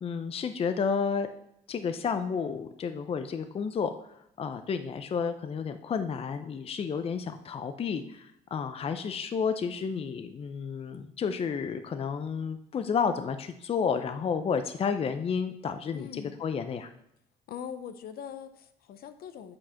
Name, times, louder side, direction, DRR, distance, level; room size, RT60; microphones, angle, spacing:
voice 1, 0.0-1.3 1.7-16.9, left 6 dB, 35° left, 9 dB, 0.6 m, -31 dB
voice 2, 15.9-16.3 17.5-19.6, left 8 dB, 65° left, 10 dB, 0.8 m, -42 dB
7.7 x 6.5 x 5.8 m, 0.76 s
cardioid pair, 110°, 17 cm